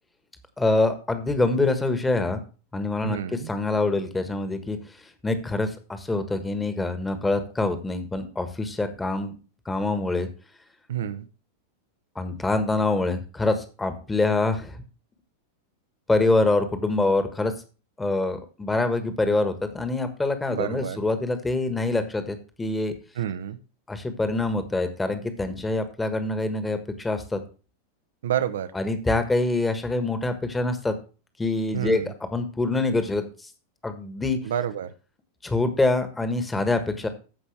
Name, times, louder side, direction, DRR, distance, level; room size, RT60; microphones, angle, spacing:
voice 1, 0.6-2.4 2.7-4.8 5.2-9.3 9.6-10.3 12.1-14.8 16.1-17.5 18.0-22.9 23.9-27.4 28.7-30.9 31.4-33.2 33.8-34.4 35.4-37.1, left 2 dB, 10° left, 9 dB, 1.4 m, -25 dB
voice 2, 3.0-3.5 10.9-11.2 20.5-21.0 23.2-23.6 28.2-28.7 31.7-32.1 34.4-34.9, right 10 dB, 60° right, 13 dB, 0.8 m, -28 dB
14.0 x 5.3 x 3.4 m, 0.35 s
figure-of-eight pair, 90°, 0 cm